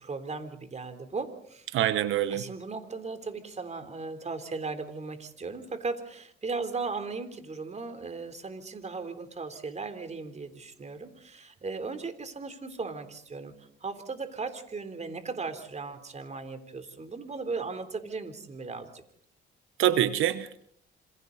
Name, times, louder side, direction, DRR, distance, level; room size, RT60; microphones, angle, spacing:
voice 1, 0.0-1.7 2.3-13.5 13.8-19.0, right 4 dB, 35° right, 9 dB, 3.6 m, -37 dB
voice 2, 1.7-2.5 19.8-20.6, right 11 dB, 85° right, 13 dB, 1.0 m, -25 dB
28.0 x 26.5 x 4.1 m, 0.63 s
cardioid pair, 90°, 20 cm